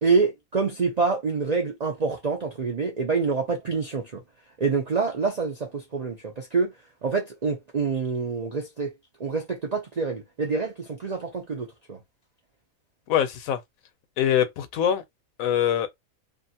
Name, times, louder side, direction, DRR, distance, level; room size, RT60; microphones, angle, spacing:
voice 1, 0.0-4.2 4.6-6.7 7.0-8.9 9.2-12.0, right 4 dB, 55° right, 0.4 m, -26 dB
voice 2, 13.1-13.6 14.2-15.0 15.4-15.9, left 10 dB, 75° left, 1.0 m, -23 dB
2.6 x 2.4 x 2.7 m
omnidirectional pair, 1.5 m